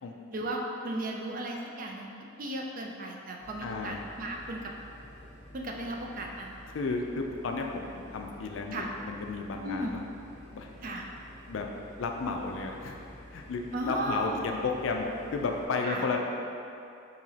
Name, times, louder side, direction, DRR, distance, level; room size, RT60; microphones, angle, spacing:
voice 1, 0.3-2.1 2.4-4.7 5.5-6.6 8.7-8.9 9.6-10.0 10.8-11.1 13.7-14.4 15.8-16.1, right 1 dB, 40° right, 0 dB, 0.4 m, -35 dB
sound 1, 3.4-15.7, equal, 35° left, 0.9 m, -50 dB
voice 2, 3.6-4.0 6.7-10.0 10.5-10.7 11.5-11.7 12.0-13.0 13.3-15.1 15.3-16.2, left 4 dB, 65° left, 2 dB, 0.4 m, -33 dB
4.8 x 2.8 x 2.8 m, 2.6 s
head